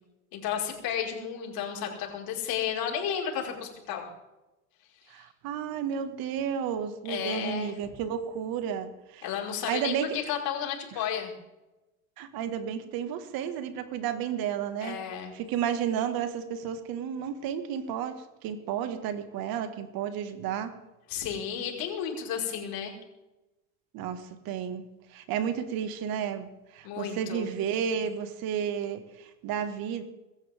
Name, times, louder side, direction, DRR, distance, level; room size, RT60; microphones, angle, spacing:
voice 1, 0.3-4.0 7.1-7.8 9.2-11.3 14.8-15.3 21.1-22.9 26.8-27.5, left 8 dB, 55° left, 0 dB, 5.4 m, -32 dB
voice 2, 5.1-9.3 9.7-10.2 10.9-11.1 12.2-15.0 15.3-20.8 23.9-24.8 25.1-30.0, right 8 dB, 55° right, 9 dB, 2.1 m, -32 dB
24.5 x 14.0 x 3.7 m, 1.0 s
hypercardioid pair, 95°, 43 cm